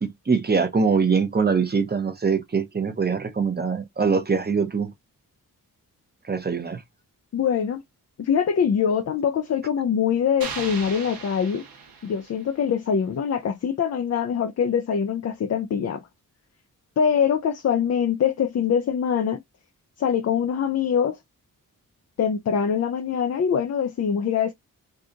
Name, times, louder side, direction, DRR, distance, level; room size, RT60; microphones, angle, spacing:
voice 1, 0.0-4.9 6.2-6.8, right 5 dB, 30° right, 0.8 m, -23 dB
voice 2, 7.3-7.8 8.2-11.6 12.0-16.0 17.0-19.4 20.0-21.2 22.2-24.5, left 7 dB, 45° left, 0.4 m, -23 dB
sound 1, 10.4-12.6, right 5 dB, 75° right, 1.0 m, -37 dB
2.7 x 2.4 x 3.7 m
wide cardioid pair, 110°, 35 cm